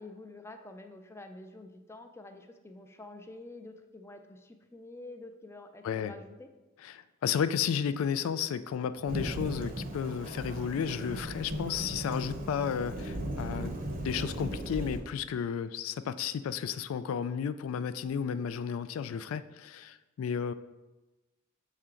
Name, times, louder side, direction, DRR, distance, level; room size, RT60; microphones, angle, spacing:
voice 1, 0.0-6.5, left 2 dB, 10° left, 6 dB, 0.4 m, -48 dB
voice 2, 6.8-13.8 14.0-20.5, left 7 dB, 90° left, 13 dB, 0.3 m, -33 dB
Thunderstorm / Rain, 9.1-15.0, right 1 dB, 40° right, 0.7 m, -37 dB
6.7 x 4.4 x 3.7 m, 1.1 s
head